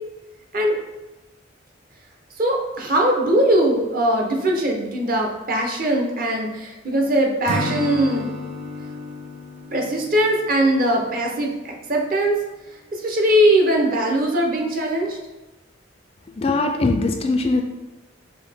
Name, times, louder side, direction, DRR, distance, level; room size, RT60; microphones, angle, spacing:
voice 1, 2.4-8.3 9.7-12.4 12.9-15.2, right 1 dB, 45° right, 1 dB, 0.7 m, -20 dB
Acoustic guitar / Strum, 7.4-11.4, left 1 dB, 80° right, 0.7 m, -32 dB
voice 2, 16.4-17.6, left 3 dB, 30° left, 3 dB, 0.3 m, -21 dB
5.4 x 2.8 x 3.5 m, 1.0 s
head